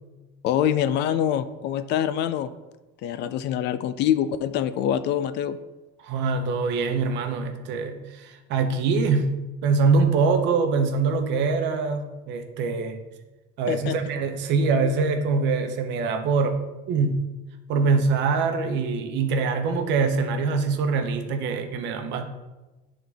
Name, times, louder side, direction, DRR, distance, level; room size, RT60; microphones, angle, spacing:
voice 1, 0.4-2.5 3.0-5.6 13.7-14.0, left 10 dB, 55° left, 13 dB, 0.4 m, -25 dB
voice 2, 6.0-13.0 13.6-16.6 16.9-17.3 17.7-22.2, right 4 dB, 55° right, 6 dB, 0.9 m, -24 dB
11.0 x 3.8 x 3.5 m, 1.1 s
cardioid pair, 160°, 21 cm